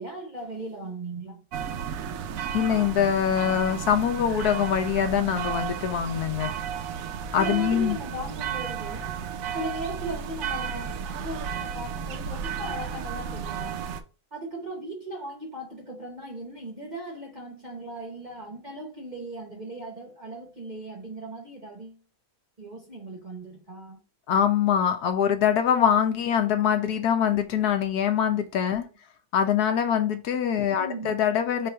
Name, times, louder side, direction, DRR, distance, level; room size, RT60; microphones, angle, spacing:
voice 1, 0.0-1.4 7.3-9.1 9.5-13.8 14.3-22.0 22.6-24.0 28.8-28.9 30.7-31.2, right 1 dB, 35° right, 0.8 m, -37 dB
sound 1, 1.5-14.0, right 7 dB, 70° right, 0.8 m, -33 dB
voice 2, 2.5-6.5 7.3-8.0 24.3-28.8 29.3-31.7, left 8 dB, 70° left, 1.1 m, -23 dB
4.6 x 2.5 x 4.3 m
omnidirectional pair, 1.9 m